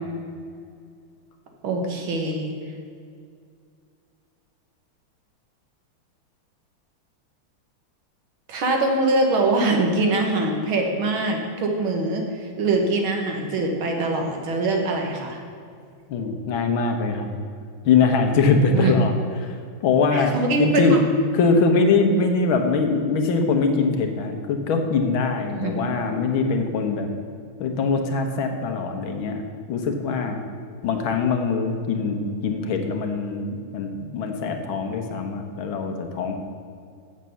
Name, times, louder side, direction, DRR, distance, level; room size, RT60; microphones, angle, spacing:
voice 1, 1.6-2.5 8.5-15.4 18.7-18.9 20.1-21.0 25.5-25.9, right 2 dB, 75° right, 2 dB, 2.1 m, -23 dB
voice 2, 16.1-17.3 17.8-21.0 21.3-27.1 27.6-29.4 29.7-30.4 30.8-36.4, left 4 dB, 75° left, 5 dB, 1.8 m, -22 dB
7.5 x 7.4 x 6.8 m, 2.3 s
omnidirectional pair, 2.3 m